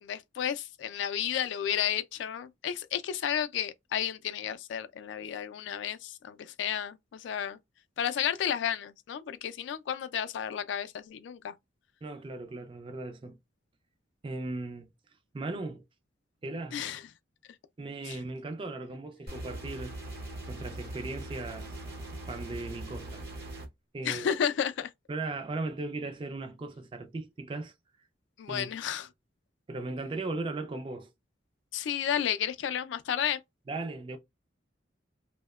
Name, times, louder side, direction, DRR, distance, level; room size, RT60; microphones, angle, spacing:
voice 1, 0.0-7.6 8.0-11.5 16.7-17.0 18.1-18.2 24.0-24.9 28.4-29.1 31.7-33.4, left 9 dB, 65° left, 0.3 m, -32 dB
voice 2, 12.0-13.4 14.2-14.9 15.3-15.8 16.4-16.8 17.8-19.9 20.5-21.8 22.3-23.3 23.9-24.3 25.1-27.7 28.5-28.7 29.7-31.1 33.7-34.2, right 2 dB, 30° right, 0.4 m, -37 dB
sound 1, 19.3-23.7, right 1 dB, 55° right, 0.8 m, -41 dB
2.7 x 2.1 x 2.2 m
head